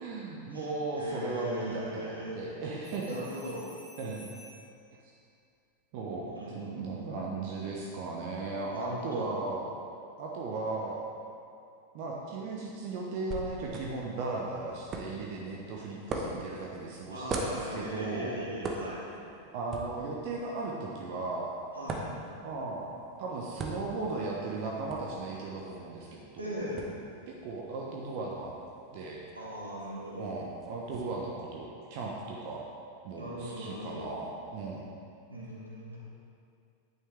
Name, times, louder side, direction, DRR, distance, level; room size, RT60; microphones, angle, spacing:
voice 1, 0.0-3.2 4.0-4.3 5.9-6.3 6.5-9.7 10.2-11.0 11.9-18.4 19.5-21.5 22.4-22.9 23.2-26.5 27.3-28.5 28.9-29.2 30.2-32.6 33.0-34.9, right 3 dB, 45° right, -2 dB, 1.0 m, -36 dB
voice 2, 1.0-2.4 3.1-3.7 6.4-7.2 8.7-9.3 17.1-19.1 21.7-22.1 26.4-26.9 29.4-30.3 33.2-34.1 35.3-36.0, equal, 80° right, -5 dB, 2.1 m, -39 dB
sound 1, 2.8-4.8 7.2-7.5, left 1 dB, 5° left, 1.5 m, -52 dB
sound 2, 13.3-31.0, right 2 dB, 30° right, 1.2 m, -43 dB
10.5 x 8.9 x 3.5 m, 2.5 s
figure-of-eight pair, 90°, 0 cm